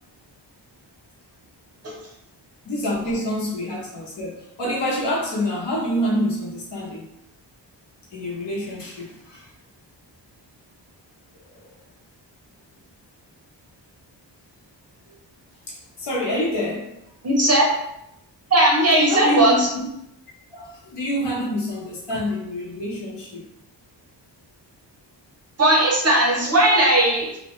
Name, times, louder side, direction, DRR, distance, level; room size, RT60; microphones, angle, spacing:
voice 1, 2.6-7.1 8.1-9.5 11.4-11.6 15.1-15.2 15.7-17.0 19.1-19.9 20.5-23.5, equal, 70° left, -4 dB, 1.0 m, -27 dB
voice 2, 17.2-17.7 18.5-19.7 25.6-27.4, right 1 dB, 35° right, -1 dB, 0.6 m, -17 dB
2.9 x 2.1 x 3.0 m, 0.81 s
wide cardioid pair, 155°, 43 cm